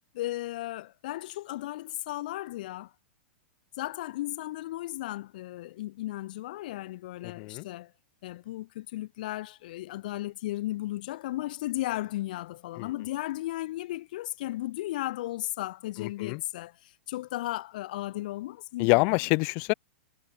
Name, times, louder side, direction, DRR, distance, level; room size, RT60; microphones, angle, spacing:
voice 1, 0.1-2.9 3.8-7.9 8.2-19.2, left 16 dB, 45° left, 1.9 m, -35 dB
voice 2, 7.2-7.7 12.8-12.9 16.0-16.4 18.8-19.7, left 33 dB, 25° left, 0.5 m, -26 dB
supercardioid pair, 175°, 7 cm